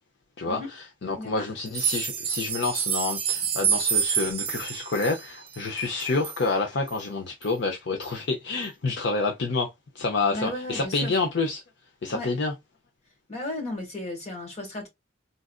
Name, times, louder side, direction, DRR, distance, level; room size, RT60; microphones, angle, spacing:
voice 1, 0.4-9.7 10.0-11.6 12.0-12.5, left 3 dB, 60° left, 0.6 m, -28 dB
sound 1, 1.7-6.4 6.9-7.0 7.4-7.5 8.0-8.1, right 8 dB, 25° right, 0.6 m, -28 dB
voice 2, 10.3-11.1 12.1-12.3 13.3-14.9, left 1 dB, 35° left, 1.5 m, -35 dB
3.9 x 2.5 x 2.3 m
head